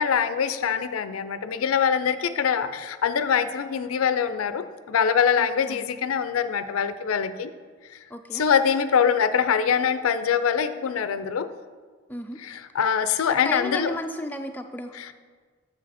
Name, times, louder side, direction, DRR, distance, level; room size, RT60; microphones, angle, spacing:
voice 1, 0.0-7.5 8.3-11.5 12.4-13.9 14.9-15.1, left 7 dB, 90° left, 12 dB, 0.4 m, -24 dB
voice 2, 5.4-5.8 8.1-8.4 12.1-12.4 13.3-14.9, left 1 dB, 10° left, 4 dB, 0.3 m, -33 dB
7.6 x 6.6 x 4.1 m, 1.5 s
head